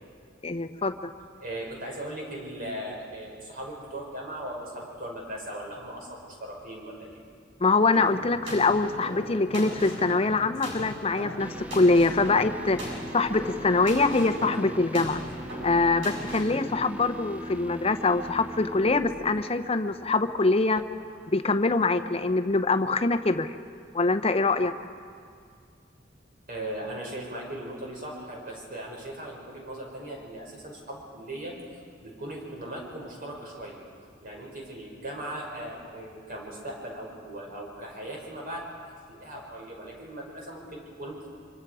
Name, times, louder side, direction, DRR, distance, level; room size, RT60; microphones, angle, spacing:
voice 1, 0.4-1.1 7.6-15.2 15.6-20.8 21.3-23.5 23.9-24.7, left 3 dB, 30° left, 8 dB, 0.8 m, -24 dB
voice 2, 1.4-7.2 26.5-33.8 34.2-38.7 39.1-41.3, right 1 dB, 50° right, -2 dB, 5.9 m, -38 dB
sound 1, 7.9-16.6, equal, 85° right, 7.7 m, -39 dB
sound 2, 11.4-21.4, right 1 dB, 10° right, 0.7 m, -40 dB
25.5 x 25.5 x 4.9 m, 2.2 s
head